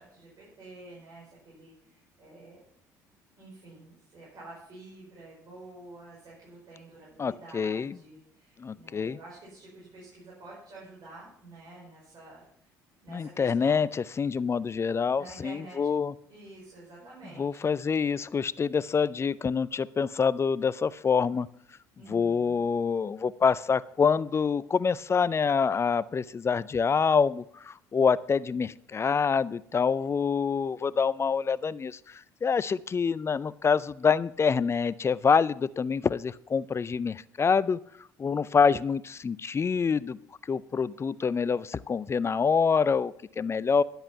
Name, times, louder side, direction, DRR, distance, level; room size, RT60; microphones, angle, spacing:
voice 1, 0.0-2.6 3.4-12.4 13.0-13.9 15.2-15.8 16.3-17.6 22.0-22.7, right 2 dB, 50° right, -5 dB, 5.4 m, -49 dB
voice 2, 7.2-8.0 8.6-9.2 13.1-16.1 17.4-21.5 22.0-37.8 38.2-40.2 40.5-43.8, left 6 dB, 30° left, 19 dB, 0.5 m, -26 dB
11.0 x 7.9 x 5.8 m, 0.67 s
hypercardioid pair, 60°, 9 cm